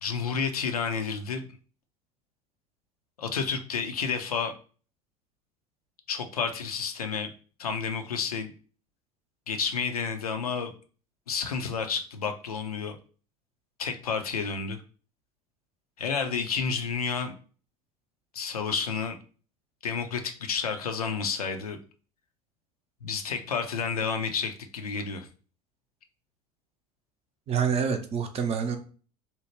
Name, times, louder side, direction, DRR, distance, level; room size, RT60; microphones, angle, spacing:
voice 1, 0.0-1.4 3.2-4.5 6.1-7.3 7.6-8.5 9.5-10.7 11.3-13.0 13.8-14.8 16.0-17.3 18.3-19.2 19.8-21.8 23.0-25.3, left 6 dB, 85° left, 6 dB, 0.4 m, -30 dB
voice 2, 27.5-28.8, right 7 dB, 35° right, 7 dB, 0.5 m, -27 dB
2.9 x 2.0 x 2.9 m, 0.39 s
figure-of-eight pair, 70°, 19 cm